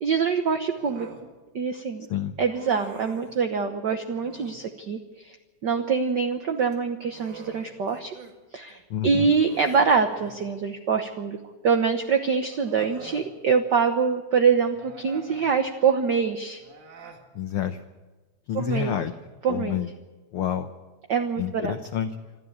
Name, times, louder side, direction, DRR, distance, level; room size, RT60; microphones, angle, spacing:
voice 1, 0.0-1.1 1.5-2.1 2.4-5.3 5.6-8.1 8.5-11.4 11.6-16.6 18.5-18.9 19.4-19.8 21.1-21.7, right 5 dB, 60° right, 6 dB, 1.1 m, -24 dB
Human voice, 0.7-1.3 2.5-3.4 4.1-4.6 6.6-8.4 8.7-8.8 9.3-10.5 11.7-11.8 12.5-13.3 14.7-15.5 16.6-17.3, right 4 dB, 75° right, 3.7 m, -45 dB
voice 2, 8.9-9.3 17.3-17.8 18.5-19.1 19.5-19.9 20.3-20.7 21.4-22.1, left 10 dB, 65° left, 8 dB, 1.4 m, -28 dB
26.5 x 13.0 x 8.7 m, 1.3 s
omnidirectional pair, 3.4 m